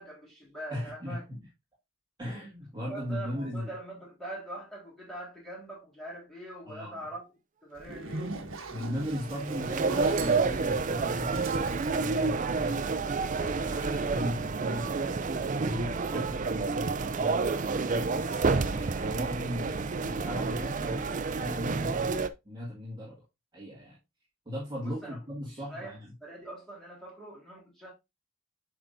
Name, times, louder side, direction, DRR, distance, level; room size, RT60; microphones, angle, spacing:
voice 1, 0.0-1.2 2.3-2.4 2.9-7.2 7.6-8.4 24.8-25.2 25.5-25.9 26.2-27.9, right 1 dB, ahead, 3.9 m, -43 dB
voice 2, 0.7-1.5 2.2-3.7 6.7-7.0 8.7-12.8 13.4-15.0 15.3-21.1 21.3-22.2 22.4-23.2 23.5-24.0 24.5-26.1, equal, 20° right, 1.8 m, -37 dB
Zipper (clothing), 7.8-13.0, right 3 dB, 65° right, 1.2 m, -40 dB
sound 1, 8.9-22.3, right 4 dB, 35° right, 0.4 m, -29 dB
7.8 x 5.4 x 2.6 m
head